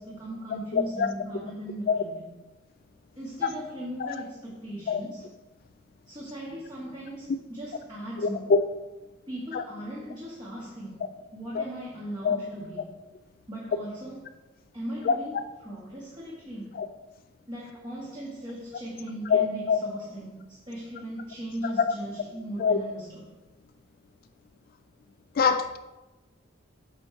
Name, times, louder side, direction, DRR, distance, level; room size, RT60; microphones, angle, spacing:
voice 1, 0.0-2.4 3.1-5.3 6.1-8.6 9.3-12.9 13.5-14.3 14.7-16.8 17.5-23.2, right 1 dB, 25° right, 1.3 m, -38 dB
voice 2, 0.7-1.1 1.9-2.0 3.4-3.5 4.0-4.1 4.9-5.0 8.2-8.6 9.5-9.6 11.6-11.7 12.2-12.4 15.1-15.4 16.8-16.9 19.3-19.8 21.6-21.9 22.6-22.8 25.4-25.8, left 5 dB, 50° left, 0.3 m, -24 dB
8.6 x 3.1 x 5.6 m
head